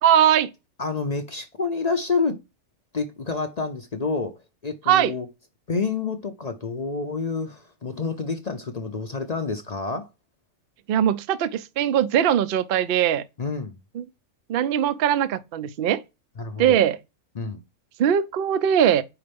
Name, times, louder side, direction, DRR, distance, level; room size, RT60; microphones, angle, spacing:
voice 1, 0.0-0.5 4.9-5.1 10.9-13.2 14.0-14.1 14.5-16.0 16.6-17.0 18.0-19.0, right 10 dB, 65° right, 0.5 m, -20 dB
voice 2, 0.8-2.4 2.9-4.3 4.6-5.3 5.7-10.1 13.4-13.8 16.4-16.8 17.3-17.6, left 4 dB, 50° left, 0.4 m, -28 dB
4.9 x 4.3 x 5.1 m
omnidirectional pair, 1.6 m